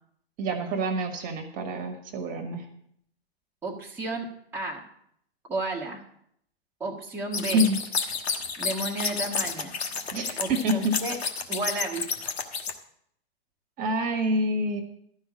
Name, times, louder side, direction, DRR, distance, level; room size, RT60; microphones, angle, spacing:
voice 1, 0.4-2.6 7.5-7.8 10.1-10.9 13.8-14.8, right 1 dB, 25° right, 6 dB, 1.4 m, -27 dB
voice 2, 3.6-4.8 5.5-6.0 6.8-7.7 8.6-9.7 10.4-11.2 11.5-12.1, right 2 dB, 5° right, -4 dB, 1.3 m, -32 dB
sound 1, 7.3-12.7, left 5 dB, 75° left, 1.3 m, -30 dB
12.5 x 5.7 x 7.2 m, 0.69 s
hypercardioid pair, 120°, 32 cm